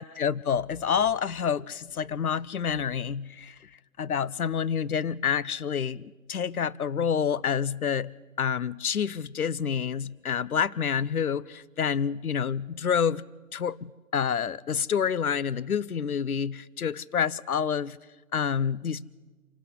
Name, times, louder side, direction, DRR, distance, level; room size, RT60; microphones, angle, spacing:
voice 1, 0.0-3.7 4.0-18.0 18.3-19.0, left 7 dB, 90° left, 0.8 m, -28 dB
26.0 x 12.5 x 8.3 m
hypercardioid pair, 170°, 42 cm